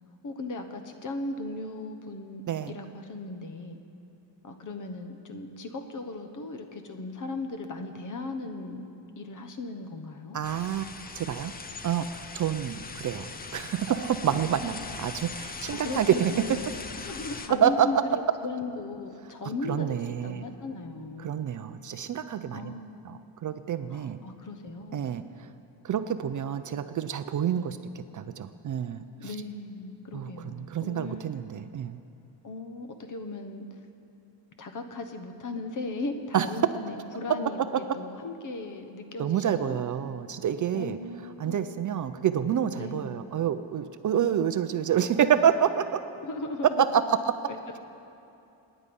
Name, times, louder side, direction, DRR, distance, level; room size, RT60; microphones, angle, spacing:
voice 1, 0.2-3.8 4.4-8.9 9.2-10.4 14.3-14.7 15.7-16.7 17.0-21.3 22.5-23.2 23.9-25.1 29.2-31.2 32.4-33.9 34.6-37.7 37.9-39.8 40.7-41.7 42.7-43.2 44.1-45.0 46.2-46.8 47.5-47.8, left 2 dB, 40° left, 6 dB, 1.2 m, -37 dB
voice 2, 10.3-11.5 11.8-16.3 17.6-18.0 19.6-20.4 21.2-22.7 23.0-24.2 24.9-25.5 25.8-29.4 30.1-32.0 36.3-36.5 39.2-41.0 41.4-46.0 46.8-47.3, right 9 dB, 45° right, 10 dB, 0.5 m, -28 dB
sound 1, 10.4-17.5, left 4 dB, 20° left, 0.5 m, -40 dB
26.0 x 10.0 x 5.4 m, 2.8 s
cardioid pair, 155°, 46 cm